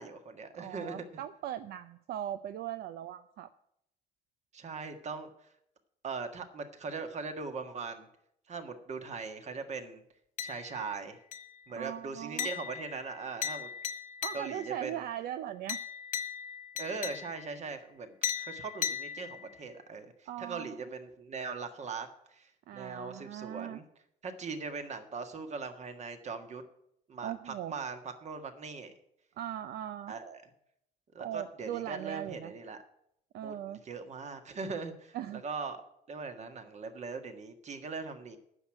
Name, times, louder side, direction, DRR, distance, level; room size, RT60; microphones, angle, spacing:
voice 1, 0.0-1.1 4.5-5.5 6.0-8.1 8.5-10.0 10.4-11.2 11.7-13.7 14.3-15.1 16.8-23.8 24.2-26.6 27.1-28.9 30.1-30.4 31.1-32.8 33.4-35.8 36.1-38.4, right 4 dB, 40° right, 7 dB, 1.6 m, -40 dB
voice 2, 0.6-3.5 11.7-12.5 14.2-15.8 20.3-20.8 22.7-23.8 27.2-27.7 29.4-30.1 31.2-32.5 33.3-33.8 35.1-35.4, right 11 dB, 70° right, 11 dB, 0.6 m, -39 dB
sound 1, 10.4-10.9 11.3-11.7 12.4-14.8 15.7-17.6 18.2-19.7, left 8 dB, 50° left, 1.0 m, -38 dB
9.8 x 6.4 x 8.8 m, 0.73 s
cardioid pair, 110°, 17 cm